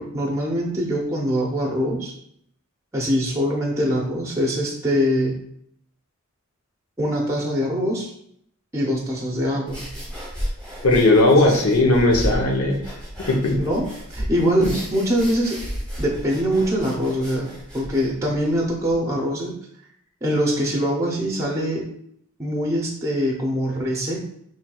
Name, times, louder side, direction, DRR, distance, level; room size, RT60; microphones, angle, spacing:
voice 1, 0.0-2.1 2.9-5.4 7.0-8.1 8.7-9.8 11.4-11.6 13.6-13.8 14.1-14.7 14.9-15.6 16.0-17.5 17.7-19.5 20.2-21.8 22.4-24.2, equal, 15° right, -1 dB, 0.6 m, -23 dB
sound 1, 9.7-18.9, equal, 5° left, 1.3 m, -33 dB
voice 2, 10.8-12.8 13.3-13.6, left 2 dB, 85° left, 1 dB, 0.8 m, -17 dB
4.4 x 3.2 x 2.3 m, 0.69 s
head